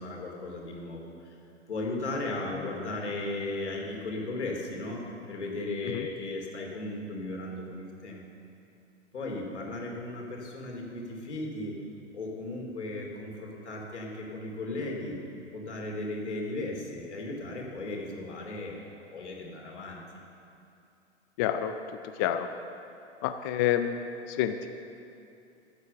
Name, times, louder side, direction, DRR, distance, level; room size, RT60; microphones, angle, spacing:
voice 1, 0.0-1.3 1.7-8.2 9.1-11.8 12.1-15.2 15.5-20.0, left 2 dB, 75° left, 0 dB, 2.9 m, -36 dB
voice 2, 21.4-21.7 22.2-22.5 23.2-24.0 24.3-24.7, left 11 dB, 20° left, 8 dB, 0.3 m, -28 dB
13.5 x 8.3 x 6.8 m, 2.7 s
figure-of-eight pair, 110°, 35 cm